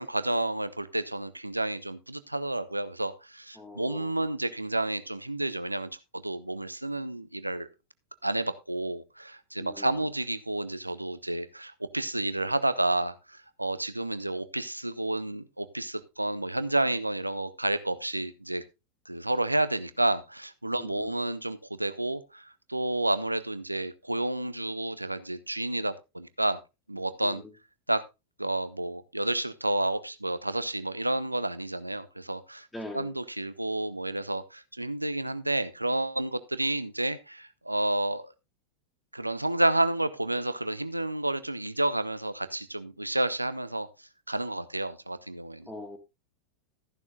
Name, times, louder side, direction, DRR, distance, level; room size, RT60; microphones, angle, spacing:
voice 1, 0.0-7.7 8.2-18.6 19.1-26.6 26.9-27.4 27.9-28.0 28.4-32.7 32.9-38.3 39.1-43.9 44.3-45.7, right 1 dB, 85° right, 0.7 m, -30 dB
voice 2, 3.6-4.3 9.6-10.1 20.7-21.1 27.2-27.5 32.7-33.1 45.7-46.0, left 1 dB, 5° left, 2.6 m, -42 dB
14.0 x 11.0 x 2.3 m
figure-of-eight pair, 90°, 0 cm